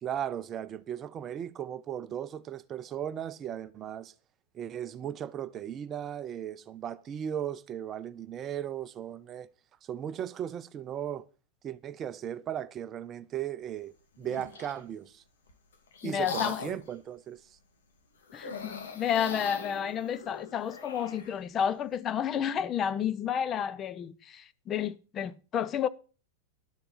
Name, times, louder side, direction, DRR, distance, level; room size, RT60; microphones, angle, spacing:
voice 1, 0.0-4.1 4.5-9.5 9.8-11.3 11.6-15.2 16.0-17.6, right 10 dB, 30° right, 0.6 m, -37 dB
sound 1, 14.2-14.8 15.5-16.9 18.3-21.3, left 5 dB, 65° left, 2.3 m, -40 dB
voice 2, 16.0-16.6 18.3-25.9, left 8 dB, 25° left, 0.6 m, -31 dB
11.5 x 6.8 x 5.6 m
figure-of-eight pair, 90°, 0 cm